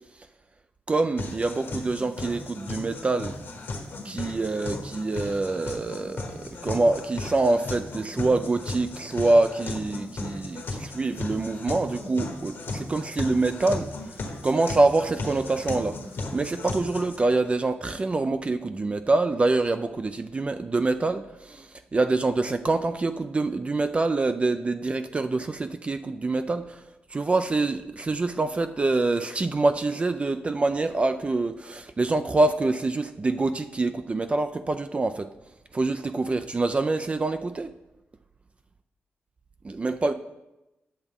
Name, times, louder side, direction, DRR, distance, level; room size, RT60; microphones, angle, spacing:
voice 1, 0.9-3.3 4.0-13.9 14.4-16.0 16.3-26.8 27.1-35.3 35.7-37.7 39.6-40.1, right 2 dB, 30° right, 0.3 m, -25 dB
sound 1, 1.2-17.2, left 2 dB, 65° left, 1.3 m, -36 dB
10.0 x 6.9 x 3.6 m
cardioid pair, 90°, 4 cm